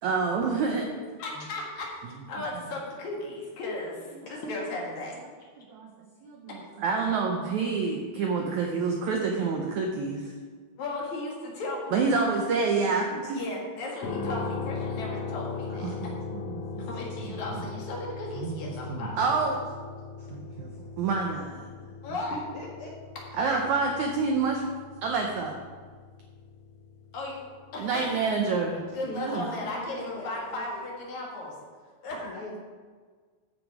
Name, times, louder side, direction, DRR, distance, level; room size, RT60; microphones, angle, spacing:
voice 1, 0.0-0.8 5.6-5.9 6.2-6.4 6.8-10.3 11.9-13.4 15.8-16.9 18.4-19.6 20.3-20.7 21.0-21.7 23.4-24.7 25.0-25.6 27.8-28.8 29.2-29.4, right 4 dB, 80° right, 1 dB, 1.6 m, -28 dB
voice 2, 0.9-1.9 2.3-5.2 6.5-6.6 10.8-12.3 13.3-15.9 16.9-19.1 22.0-22.4 23.4-23.6 27.1-27.4 27.7-28.2 28.9-31.6 32.0-32.4, left 2 dB, 50° left, -2 dB, 3.0 m, -36 dB
sound 1, 14.0-28.0, left 4 dB, 70° left, 1.5 m, -39 dB
voice 3, 22.3-22.9 23.3-23.4 28.9-30.9 32.2-32.6, left 1 dB, 90° left, -3 dB, 1.2 m, -41 dB
14.5 x 6.3 x 5.0 m, 1.5 s
omnidirectional pair, 4.6 m